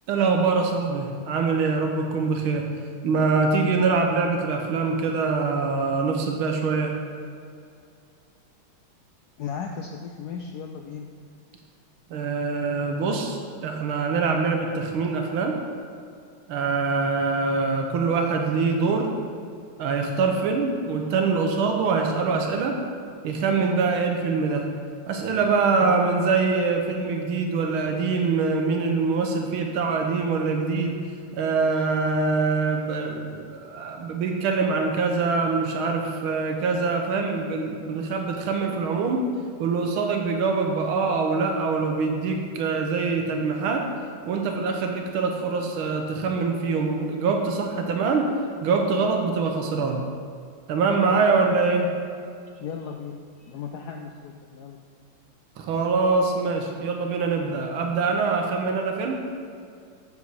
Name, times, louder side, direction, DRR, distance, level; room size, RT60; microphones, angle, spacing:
voice 1, 0.1-2.7 3.0-6.9 12.1-15.6 16.5-19.1 19.8-22.7 23.2-24.7 25.1-31.0 31.3-39.2 39.6-43.8 44.3-48.3 48.6-50.0 50.7-51.9 55.6-59.2, right 4 dB, 85° right, 2 dB, 1.8 m, -24 dB
voice 2, 9.4-11.1 25.8-26.0 51.0-51.6 52.6-54.8, left 6 dB, 75° left, 2 dB, 0.9 m, -36 dB
8.2 x 6.9 x 4.8 m, 2.4 s
omnidirectional pair, 2.3 m